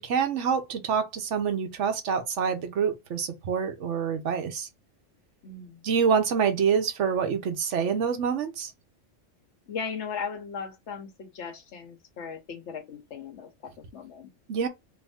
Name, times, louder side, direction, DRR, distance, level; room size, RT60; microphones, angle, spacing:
voice 1, 0.0-4.7 5.8-8.7 14.5-14.7, right 6 dB, 70° right, 1.1 m, -26 dB
voice 2, 5.4-5.8 9.7-14.3, left 6 dB, 65° left, 1.2 m, -37 dB
3.1 x 2.6 x 3.3 m
omnidirectional pair, 1.3 m